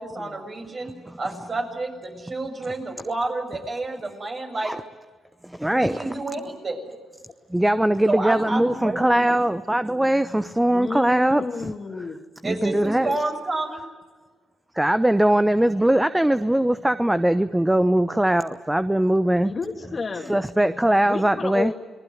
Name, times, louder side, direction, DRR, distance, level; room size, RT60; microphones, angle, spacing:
voice 1, 0.0-4.7 5.6-6.9 8.1-9.3 12.4-13.8, right 2 dB, 40° right, 3 dB, 7.2 m, -30 dB
voice 2, 5.4-6.1 7.5-11.7 12.4-13.1 14.7-19.5 20.3-21.7, right 1 dB, 10° right, 12 dB, 0.9 m, -21 dB
voice 3, 8.5-9.4 10.7-12.2 12.9-13.2 19.4-20.4 21.1-21.7, left 4 dB, 40° left, 5 dB, 2.6 m, -32 dB
29.5 x 20.0 x 9.5 m, 1.4 s
supercardioid pair, 60°, 0 cm